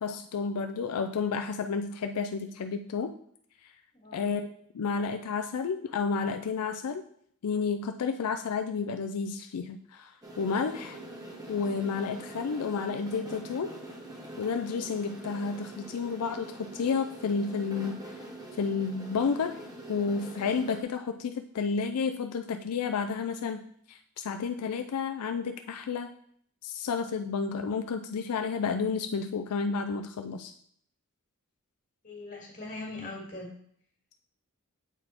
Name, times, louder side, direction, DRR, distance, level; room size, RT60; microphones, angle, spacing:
voice 1, 0.0-3.1 3.6-3.7 4.1-4.5 4.7-7.0 7.4-11.0 11.5-13.8 14.4-18.2 18.6-19.6 19.9-23.6 23.9-26.1 26.6-30.5, left 5 dB, 85° left, 6 dB, 0.4 m, -31 dB
voice 2, 3.9-4.2 32.0-33.5, left 2 dB, 35° left, -1 dB, 2.1 m, -41 dB
sound 1, 10.2-20.8, right 1 dB, 15° right, 1.0 m, -44 dB
8.0 x 4.1 x 4.3 m, 0.65 s
head